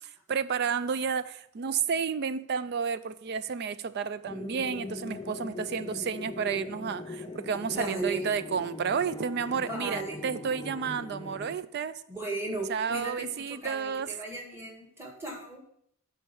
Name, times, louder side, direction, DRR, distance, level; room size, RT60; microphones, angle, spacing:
voice 1, 0.0-12.0 12.7-14.1, right 6 dB, 45° right, 14 dB, 0.3 m, -31 dB
sound 1, 4.2-11.6, left 3 dB, 20° left, 0.5 m, -41 dB
voice 2, 7.7-8.3 9.5-10.2 12.1-15.6, right 2 dB, 10° right, -1 dB, 1.9 m, -36 dB
8.4 x 4.5 x 7.1 m, 0.72 s
head